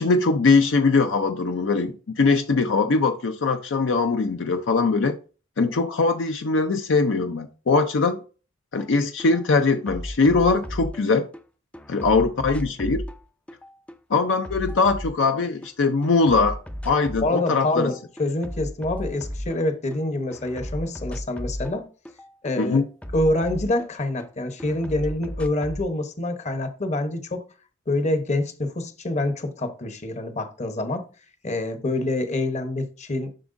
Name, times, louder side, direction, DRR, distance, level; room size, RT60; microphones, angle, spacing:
voice 1, 0.0-5.2 5.6-8.2 8.7-11.3 11.9-13.0 14.1-16.6 16.8-17.9 22.6-22.9, left 4 dB, 65° left, 0.5 m, -21 dB
sound 1, 8.8-8.9 9.2-11.4 11.7-15.7 16.0-17.5 17.8-20.0 20.3-24.3 24.6-25.9, equal, 5° left, 0.4 m, -35 dB
voice 2, 17.2-21.8 22.4-22.8 23.1-27.4 27.9-31.0 31.4-33.3, left 2 dB, 35° left, 0.9 m, -26 dB
7.5 x 6.0 x 2.6 m
head